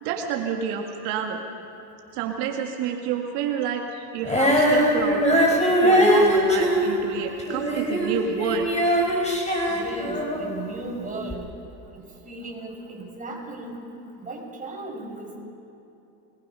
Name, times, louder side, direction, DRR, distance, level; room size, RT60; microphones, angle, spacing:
voice 1, 0.0-1.4 2.1-5.5 5.8-8.7 9.6-9.8, right 7 dB, 80° right, 2 dB, 2.0 m, -29 dB
Female singing, 4.2-10.6 11.3-11.4, equal, 15° left, 4.6 m, -21 dB
voice 2, 9.7-11.5 11.9-13.8 14.2-15.4, right 2 dB, 15° right, -1 dB, 5.1 m, -36 dB
25.0 x 20.0 x 5.6 m, 2.9 s
supercardioid pair, 110°, 47 cm